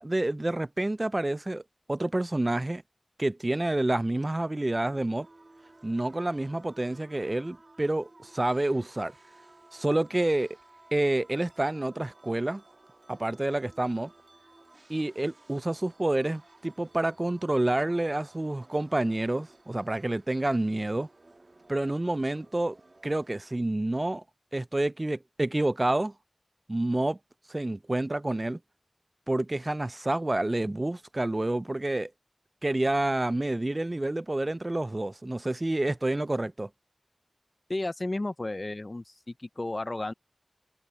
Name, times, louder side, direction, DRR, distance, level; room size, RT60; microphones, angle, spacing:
voice 1, 0.0-1.6 1.9-2.8 3.2-5.3 5.8-9.1 9.7-10.6 10.9-12.6 13.1-14.1 14.9-21.1 21.7-22.8 23.0-24.2 24.5-26.1 26.7-27.2 27.5-28.6 29.3-32.1 32.6-36.7, right 1 dB, 50° right, 0.3 m, -28 dB
sound 1, 4.8-23.6, right 2 dB, 80° right, 1.3 m, -57 dB
voice 2, 37.7-40.1, left 2 dB, 60° left, 0.3 m, -33 dB
wide cardioid pair, 45°, 0 cm